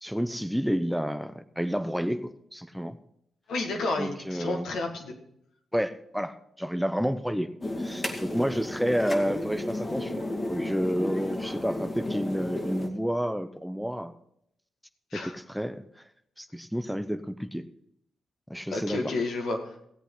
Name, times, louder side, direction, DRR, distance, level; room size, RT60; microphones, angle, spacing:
voice 1, 0.0-3.0 4.0-4.7 5.7-7.5 7.8-14.1 15.1-15.8 16.4-17.7 18.5-19.1, equal, ahead, 10 dB, 0.7 m, -30 dB
voice 2, 3.5-5.1 15.1-15.3 18.7-19.8, left 2 dB, 75° left, 2 dB, 2.0 m, -31 dB
sound 1, 7.6-12.9, left 1 dB, 30° left, 1.9 m, -33 dB
16.5 x 8.2 x 4.0 m, 0.74 s
supercardioid pair, 55°, 0 cm